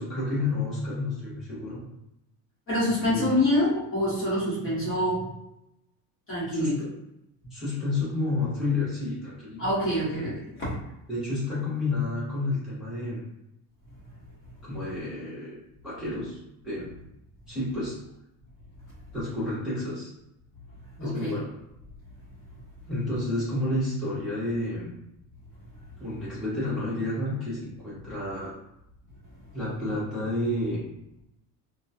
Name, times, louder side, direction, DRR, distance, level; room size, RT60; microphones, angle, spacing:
voice 1, 0.0-1.8 3.1-3.3 6.6-6.9 7.5-9.6 11.1-13.2 14.6-16.9 17.5-18.0 19.1-20.1 21.0-21.5 22.9-24.9 26.0-28.5 29.5-30.8, left 2 dB, ahead, -11 dB, 1.1 m, -30 dB
voice 2, 2.7-5.3 6.3-6.9 9.6-10.8 21.0-21.4, left 1 dB, 30° left, -8 dB, 1.2 m, -26 dB
2.9 x 2.2 x 2.7 m, 0.86 s
cardioid pair, 145°, 44 cm